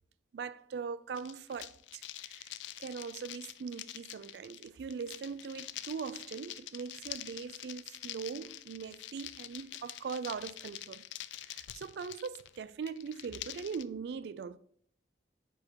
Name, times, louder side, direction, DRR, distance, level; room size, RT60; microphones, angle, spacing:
voice 1, 0.3-2.5 2.8-11.0 11.5-14.6, right 6 dB, 65° right, 0.3 m, -41 dB
sound 1, 1.1-13.8, left 14 dB, 85° left, 0.3 m, -46 dB
4.9 x 4.7 x 4.4 m
head